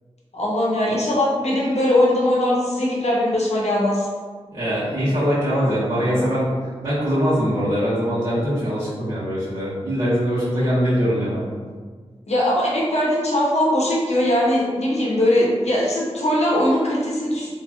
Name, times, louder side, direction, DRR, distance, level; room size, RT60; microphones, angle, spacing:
voice 1, 0.3-4.1 12.3-17.5, left 1 dB, 70° left, -4 dB, 0.7 m, -20 dB
voice 2, 4.5-6.5 6.8-11.4, equal, 45° right, -14 dB, 1.2 m, -22 dB
3.0 x 2.5 x 2.3 m, 1.5 s
wide cardioid pair, 55°, 12 cm